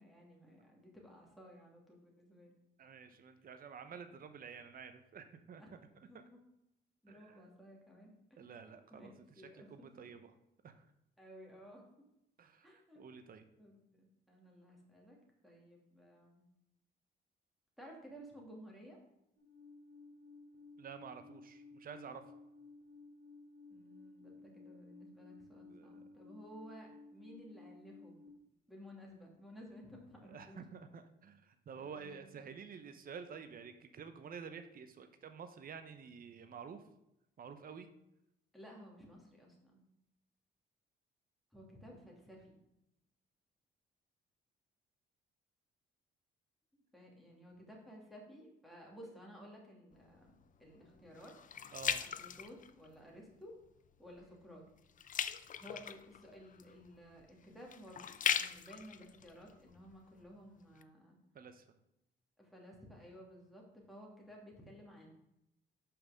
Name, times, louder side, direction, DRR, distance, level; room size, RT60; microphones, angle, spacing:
voice 1, 0.0-2.5 3.1-3.2 3.9-4.1 5.6-6.4 7.0-8.4 8.9-10.1 11.2-12.0 12.6-13.0 13.6-15.2 15.4-16.5 17.8-19.0 23.7-28.1 28.7-30.6 31.8-32.4 38.5-39.8 41.5-42.6 46.9-50.3 50.6-53.6 54.0-54.6 55.6-58.1 58.4-61.2 62.4-65.1, equal, ahead, -2 dB, 2.6 m, -55 dB
voice 2, 2.8-5.6 7.1-7.4 8.4-9.1 9.7-10.3 10.6-10.8 12.4-13.4 20.8-22.2 25.7-25.9 30.3-36.8 37.4-37.9 51.7-52.0 61.3-61.6, right 6 dB, 45° right, 9 dB, 0.8 m, -50 dB
Alarm, 19.4-28.3, left 3 dB, 65° right, 2.5 m, -57 dB
sound 1, 49.9-53.2 53.7-54.0 54.3-60.2 60.8-60.9, left 8 dB, 40° left, 0.5 m, -40 dB
5.8 x 5.5 x 6.5 m, 0.85 s
cardioid pair, 90°, 20 cm